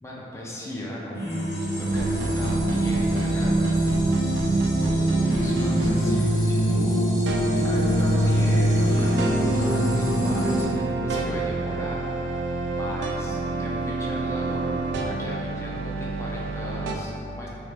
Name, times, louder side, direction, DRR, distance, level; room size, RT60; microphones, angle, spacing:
voice 1, 0.0-1.2 1.8-3.6 4.3-4.5 4.8-4.9 5.3-7.2 7.6-12.1 12.7-14.8 15.0-17.5, equal, 15° left, -4 dB, 0.3 m, -36 dB
sound 1, 1.1-10.6, right 1 dB, 75° left, 1.3 m, -23 dB
sound 2, 1.9-6.1 7.3-17.0, right 2 dB, 85° right, 0.3 m, -29 dB
3.1 x 2.4 x 3.2 m, 2.7 s
head